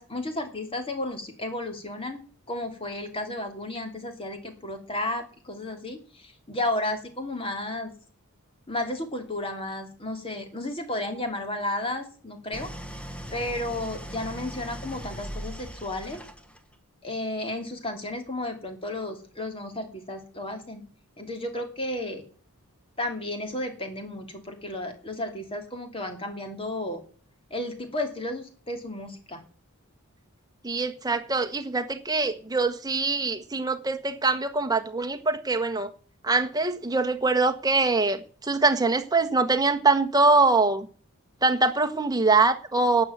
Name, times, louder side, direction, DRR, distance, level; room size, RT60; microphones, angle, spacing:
voice 1, 0.0-2.2 2.5-7.9 8.7-12.7 13.3-16.2 17.0-20.8 21.2-22.2 23.0-27.0 27.5-29.4, left 1 dB, 25° left, 2.9 m, -33 dB
Idling, 12.5-16.7, equal, 5° left, 1.3 m, -39 dB
voice 2, 30.6-35.9 36.2-40.9 41.4-43.0, right 3 dB, 15° right, 1.4 m, -23 dB
12.0 x 8.1 x 9.0 m
head